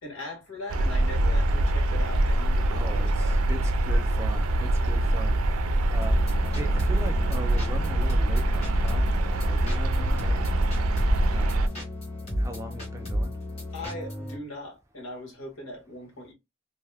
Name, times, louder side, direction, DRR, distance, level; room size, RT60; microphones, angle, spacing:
voice 1, 0.0-3.4 13.7-16.3, left 1 dB, 85° left, 1.4 m, -40 dB
sound 1, 0.7-11.7, right 1 dB, 85° right, 0.4 m, -24 dB
voice 2, 2.7-5.3 5.9-6.2 6.5-10.4 11.3-11.7 12.4-13.3, right 1 dB, 15° right, 0.4 m, -39 dB
sound 2, 6.0-14.4, equal, 30° left, 1.4 m, -32 dB
2.7 x 2.1 x 3.3 m
head